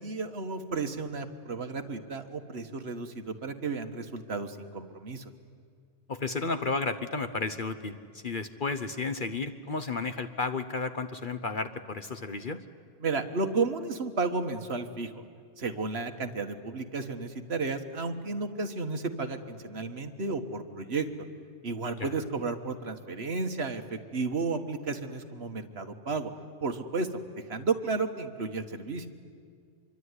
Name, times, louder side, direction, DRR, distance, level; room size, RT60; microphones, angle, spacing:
voice 1, 0.0-5.2 13.0-15.2 15.6-21.1 21.6-26.3 26.6-27.1 27.3-29.1, right 4 dB, 45° right, 6 dB, 1.6 m, -33 dB
voice 2, 6.1-12.6 21.9-22.1, left 3 dB, 40° left, 9 dB, 0.9 m, -33 dB
25.5 x 23.5 x 9.8 m, 2.1 s
omnidirectional pair, 1.5 m